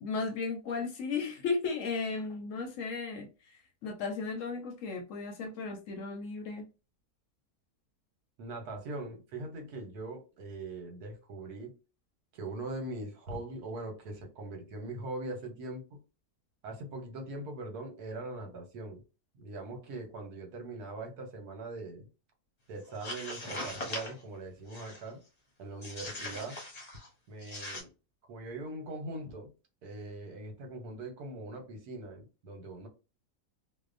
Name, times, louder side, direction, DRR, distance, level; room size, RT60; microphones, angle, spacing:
voice 1, 0.0-6.7, left 4 dB, 70° left, 0.8 m, -35 dB
voice 2, 8.4-11.8 12.3-16.0 16.6-19.0 19.3-22.1 22.7-25.2 25.6-26.6 27.3-27.9 28.3-29.5 29.8-32.9, right 2 dB, 85° right, 1.3 m, -41 dB
sound 1, 22.9-24.2 24.7-25.1 25.8-27.1 27.4-27.8, left 1 dB, 35° left, 0.7 m, -40 dB
2.7 x 2.1 x 2.4 m
omnidirectional pair, 1.6 m